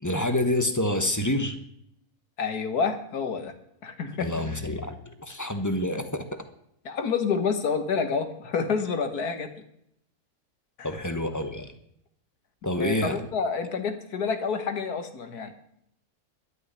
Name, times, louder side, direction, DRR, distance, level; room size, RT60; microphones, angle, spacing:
voice 1, 0.0-1.6 4.2-6.4 10.8-11.7 12.6-13.2, left 1 dB, 15° left, 7 dB, 1.0 m, -27 dB
voice 2, 2.4-3.5 3.8-4.3 6.9-9.5 10.8-10.9 12.8-15.5, left 5 dB, 80° left, 7 dB, 1.9 m, -28 dB
12.5 x 6.3 x 9.7 m, 0.73 s
omnidirectional pair, 1.6 m